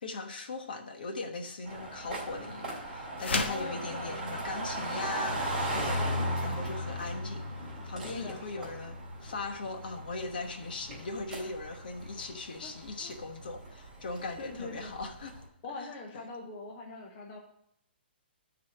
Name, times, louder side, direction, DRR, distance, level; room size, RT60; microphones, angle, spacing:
voice 1, 0.0-6.0 6.4-15.4 15.8-15.9, left 3 dB, 55° left, 5 dB, 1.2 m, -39 dB
sound 1, 1.7-15.4, equal, 10° right, 2.2 m, -37 dB
sound 2, 3.2-3.7, left 3 dB, 85° left, 1.1 m, -30 dB
voice 2, 3.5-4.5 8.0-8.7 12.6-13.1 14.4-14.9 15.6-17.4, left 3 dB, 20° left, 0 dB, 0.8 m, -43 dB
9.3 x 4.2 x 5.9 m, 0.74 s
hypercardioid pair, 175°, 6 cm